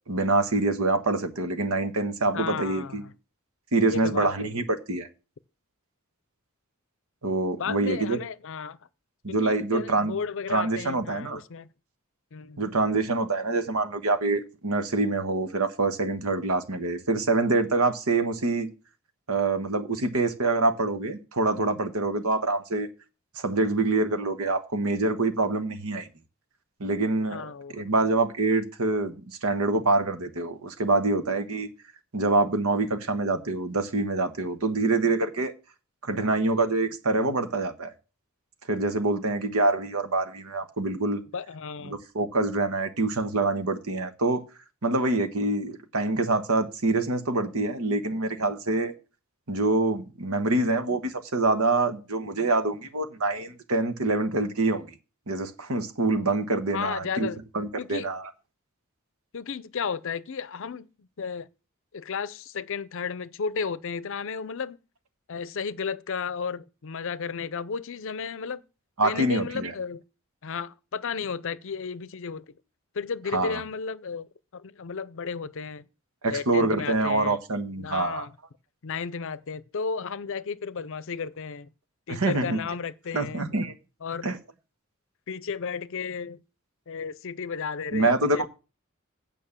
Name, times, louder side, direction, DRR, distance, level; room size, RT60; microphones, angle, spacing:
voice 1, 0.1-3.0 3.7-5.1 7.2-8.2 9.2-10.1 10.5-11.4 12.6-18.7 19.3-22.9 23.4-26.1 26.8-27.4 27.7-31.7 32.1-35.5 36.1-37.9 38.7-41.2 41.8-44.4 44.8-48.9 49.5-54.9 55.3-57.3 57.5-58.2 69.0-69.7 73.3-73.6 76.2-78.3 82.1-82.6 83.1-83.7 84.2-84.4 87.9-88.5, right 3 dB, 85° right, 1.3 m, -25 dB
voice 2, 2.3-3.1 3.9-4.5 7.6-8.8 9.3-11.7 12.3-12.6 27.3-27.8 41.3-42.0 56.7-57.4 57.8-58.1 59.3-61.5 61.9-64.8 65.3-68.6 69.0-70.0 70.4-72.6 72.9-75.8 76.3-77.4 77.8-78.3 78.8-81.7 82.1-83.5 84.0-84.3 85.3-86.4 86.9-88.5, left 5 dB, 65° left, 0.6 m, -33 dB
9.0 x 5.4 x 7.2 m
head